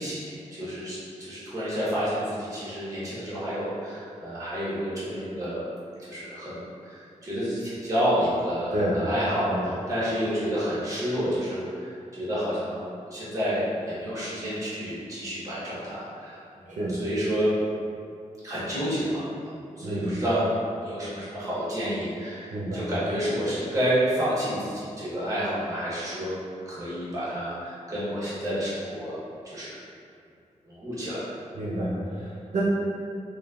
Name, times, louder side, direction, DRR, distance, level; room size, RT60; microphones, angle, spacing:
voice 1, 0.0-5.6 6.0-6.5 6.8-12.8 13.1-16.7 17.0-17.5 18.4-20.5 20.8-26.3 26.7-29.2 29.4-29.7 30.7-31.3, equal, 25° right, -10 dB, 1.1 m, -29 dB
voice 2, 8.7-9.0 9.5-9.6 16.7-17.0 19.8-20.2 22.5-22.9 31.5-32.6, right 1 dB, 70° right, -8 dB, 0.5 m, -29 dB
3.0 x 2.2 x 2.3 m, 2.4 s
wide cardioid pair, 95°, 13 cm